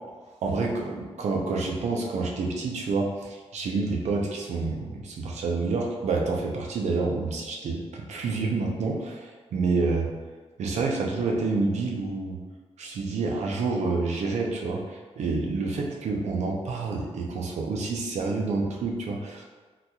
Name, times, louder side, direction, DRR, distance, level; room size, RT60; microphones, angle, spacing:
voice 1, 0.4-10.1 10.6-12.4 12.8-19.5, right 3 dB, 90° right, 0 dB, 0.5 m, -28 dB
3.8 x 2.8 x 2.3 m, 1.4 s
cardioid pair, 95°, 11 cm